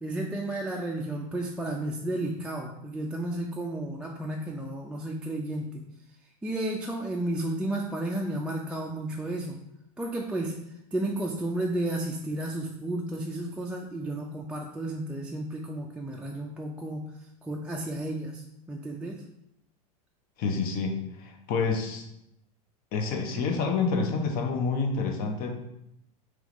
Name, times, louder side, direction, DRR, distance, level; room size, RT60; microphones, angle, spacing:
voice 1, 0.0-5.8 6.4-9.6 10.0-10.6 10.9-17.1 17.4-19.2, right 1 dB, 5° right, -2 dB, 0.3 m, -32 dB
voice 2, 20.4-22.0 22.9-25.5, left 4 dB, 50° left, 4 dB, 0.7 m, -28 dB
3.5 x 3.1 x 3.0 m, 0.80 s
hypercardioid pair, 100°, 20 cm